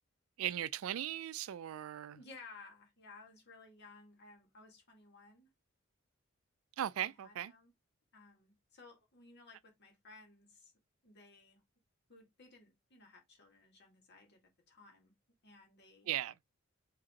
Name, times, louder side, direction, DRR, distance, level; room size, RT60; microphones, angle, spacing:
voice 1, 0.4-2.2 6.8-7.5 16.1-16.3, right 11 dB, 80° right, 0.3 m, -38 dB
voice 2, 2.1-5.5 6.9-7.7 8.1-10.7 11.0-11.6 12.1-14.4 14.7-15.1 15.4-16.1, left 3 dB, 55° left, 1.6 m, -58 dB
5.0 x 2.9 x 2.8 m
head